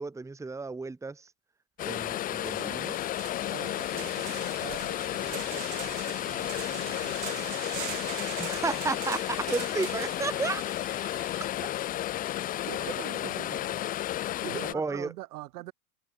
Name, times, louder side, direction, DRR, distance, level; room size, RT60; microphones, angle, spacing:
voice 1, 0.0-1.3 1.8-3.1 8.4-10.6 14.4-15.1, right 4 dB, 5° right, 1.1 m, -33 dB
sound 1, 1.8-14.7, left 13 dB, 20° left, 0.4 m, -32 dB
sound 2, 2.0-2.1 2.4-12.0, right 20 dB, 40° right, 1.1 m, -43 dB
voice 2, 3.5-8.2 12.7-15.7, right 18 dB, 75° right, 2.0 m, -45 dB
hypercardioid pair, 115°, 46 cm